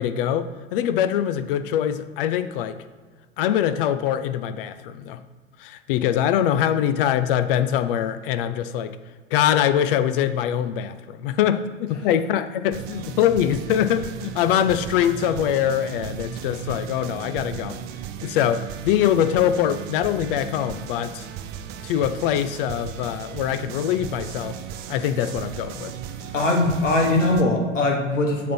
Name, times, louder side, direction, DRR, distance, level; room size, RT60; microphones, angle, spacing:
voice 1, 0.0-2.8 3.4-5.2 5.6-9.0 9.3-17.8 18.2-21.3 21.8-24.6 24.9-25.9, left 10 dB, 50° left, 11 dB, 0.5 m, -23 dB
sound 1, 12.7-27.4, right 9 dB, 30° right, 0.4 m, -36 dB
voice 2, 26.3-28.5, left 2 dB, 80° left, 2 dB, 1.4 m, -21 dB
7.3 x 3.5 x 4.4 m, 1.5 s
figure-of-eight pair, 90°, 37 cm